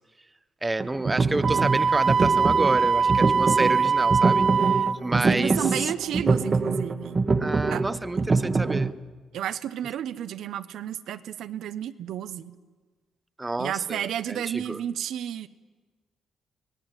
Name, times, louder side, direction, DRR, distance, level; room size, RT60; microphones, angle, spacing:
voice 1, 0.6-5.9 7.4-8.9 13.4-14.8, right 2 dB, 15° right, 13 dB, 0.8 m, -29 dB
sound 1, 0.8-8.9, right 4 dB, 30° right, 1.3 m, -25 dB
Wind instrument woodwind instrument, 1.4-5.0, right 5 dB, 50° right, 1.1 m, -22 dB
voice 2, 5.1-7.2 7.7-7.8 9.3-12.6 13.6-15.5, right 10 dB, 75° right, 11 dB, 0.9 m, -32 dB
25.5 x 18.0 x 9.0 m, 1.4 s
cardioid pair, 90°, 0 cm